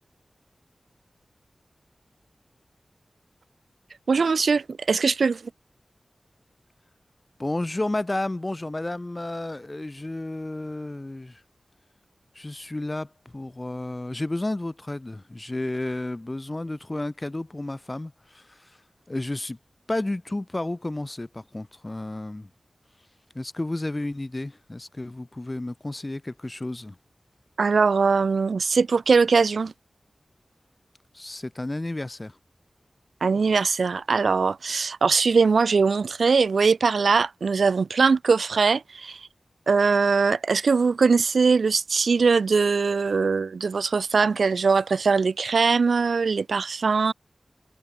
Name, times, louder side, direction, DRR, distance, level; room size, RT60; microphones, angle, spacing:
voice 1, 4.1-5.4 27.6-29.7 33.2-39.2 39.7-47.1, right 4 dB, 90° right, 0.4 m, -21 dB
voice 2, 7.4-11.4 12.3-18.4 19.1-19.6 19.9-22.5 23.3-26.9 31.1-32.3, left 2 dB, 30° left, 1.2 m, -32 dB
wide cardioid pair, 70°, 0 cm